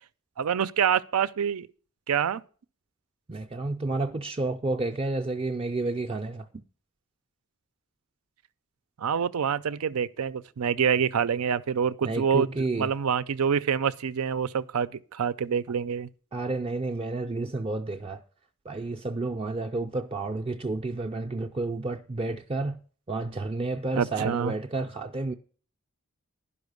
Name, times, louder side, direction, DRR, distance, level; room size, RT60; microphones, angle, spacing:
voice 1, 0.4-1.7 2.1-2.4 9.0-12.5 12.8-16.1 24.0-24.5, right 7 dB, 90° right, 0.5 m, -26 dB
voice 2, 3.3-6.6 12.0-12.9 16.3-18.2 18.7-22.8 23.1-25.3, right 2 dB, 25° right, 0.4 m, -30 dB
10.5 x 5.6 x 6.6 m
head